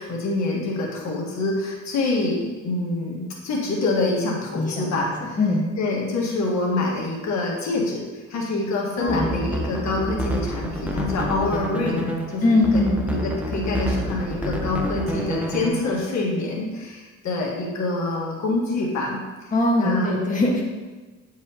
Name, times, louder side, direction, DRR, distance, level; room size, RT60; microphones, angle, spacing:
voice 1, 0.0-5.4 5.8-19.5 19.8-20.2, left 2 dB, 65° left, -2 dB, 1.7 m, -26 dB
voice 2, 4.5-5.1 5.4-5.6 9.0-9.3 12.4-13.0 19.5-20.6, left 2 dB, 25° left, -2 dB, 1.5 m, -21 dB
sound 1, 9.0-16.1, equal, 5° right, 0.9 m, -28 dB
9.5 x 4.8 x 2.9 m, 1.3 s
cardioid pair, 90°, 30 cm